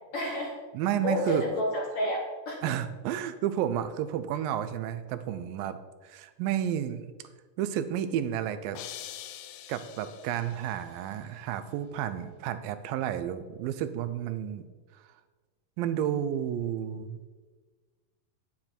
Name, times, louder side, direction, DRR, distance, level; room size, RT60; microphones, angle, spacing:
voice 1, 0.1-0.5 1.0-2.6, left 1 dB, 60° left, 0 dB, 1.6 m, -30 dB
voice 2, 0.7-1.5 2.6-7.1 7.6-8.8 9.7-14.7 14.9-15.0 15.8-17.2, right 10 dB, 90° right, 11 dB, 2.5 m, -31 dB
sound 1, 8.7-10.8, left 11 dB, 80° left, 2.0 m, -44 dB
9.8 x 9.1 x 4.5 m, 1.4 s
omnidirectional pair, 4.0 m